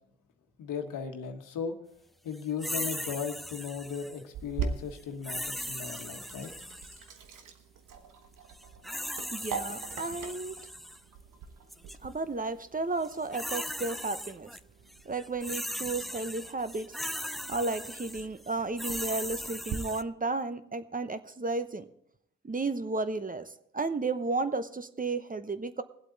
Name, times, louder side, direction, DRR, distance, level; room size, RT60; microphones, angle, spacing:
voice 1, 0.6-1.7 2.2-6.5, left 6 dB, 70° left, 6 dB, 1.4 m, -37 dB
sound 1, 2.6-4.2 5.2-7.1 8.5-11.0 11.7-12.0 13.0-14.6 14.9-20.0, equal, ahead, 0.4 m, -38 dB
Sink (filling or washing), 4.3-19.8, right 6 dB, 65° right, 1.3 m, -43 dB
voice 2, 9.3-10.6 12.0-14.5 15.1-17.0 17.5-21.9 22.4-25.8, right 3 dB, 25° right, 11 dB, 0.9 m, -33 dB
19.5 x 8.1 x 4.0 m, 0.74 s
hypercardioid pair, 45°, 34 cm